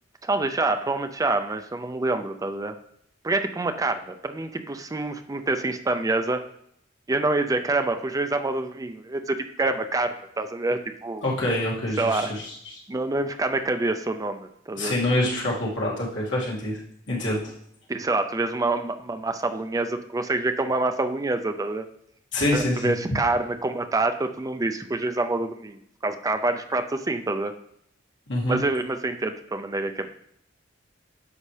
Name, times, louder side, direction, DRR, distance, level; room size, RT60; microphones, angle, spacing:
voice 1, 0.2-2.7 3.2-6.4 7.1-11.2 12.0-12.3 12.9-15.0 17.9-21.9 22.5-27.5 28.5-30.2, right 2 dB, 20° right, 7 dB, 0.4 m, -26 dB
voice 2, 11.2-12.8 14.8-16.8 17.1-17.5 22.3-22.9 28.3-28.6, left 1 dB, 75° left, -4 dB, 2.3 m, -26 dB
9.8 x 6.4 x 3.3 m, 0.72 s
head